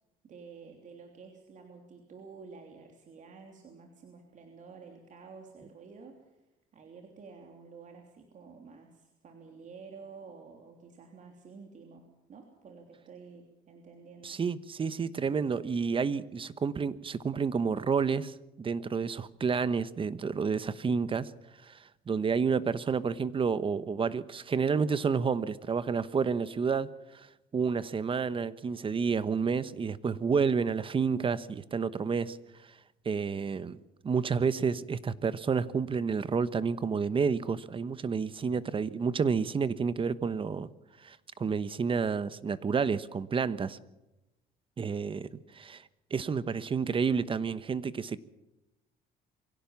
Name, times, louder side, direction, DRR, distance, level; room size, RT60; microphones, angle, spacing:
voice 1, 0.2-6.5 6.7-14.4, right 5 dB, 50° right, 3 dB, 3.2 m, -50 dB
voice 2, 14.2-21.3 21.6-21.8 22.1-27.3 27.5-32.4 33.0-33.8 34.0-40.7 41.0-43.8 44.8-45.3 45.5-45.8 46.1-48.2, right 5 dB, 30° right, 15 dB, 1.1 m, -30 dB
24.0 x 16.5 x 7.2 m, 0.97 s
cardioid pair, 110°, 17 cm